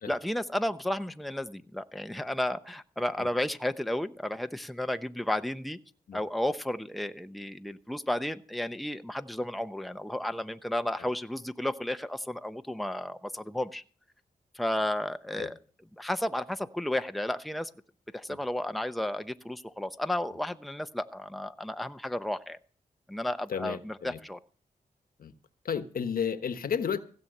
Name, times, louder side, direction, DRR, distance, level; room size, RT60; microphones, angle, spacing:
voice 1, 0.1-5.8 6.1-13.8 14.5-15.5 16.0-17.7 18.1-22.6 23.1-24.4, left 1 dB, ahead, 0.7 m, -33 dB
voice 2, 23.5-24.2 25.2-25.3 25.6-27.0, left 7 dB, 75° left, 1.1 m, -32 dB
16.0 x 7.2 x 6.5 m
cardioid pair, 65°, 15 cm